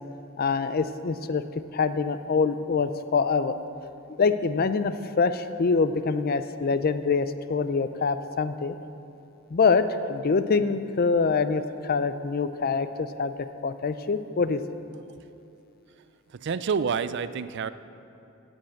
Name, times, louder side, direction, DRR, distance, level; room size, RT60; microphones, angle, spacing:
voice 1, 0.4-1.4 1.7-3.5 4.2-8.7 9.5-13.3 13.6-14.6, left 4 dB, 45° left, 11 dB, 0.4 m, -25 dB
voice 2, 16.4-17.7, right 6 dB, 55° right, 14 dB, 0.4 m, -28 dB
15.5 x 5.4 x 7.6 m, 2.7 s
head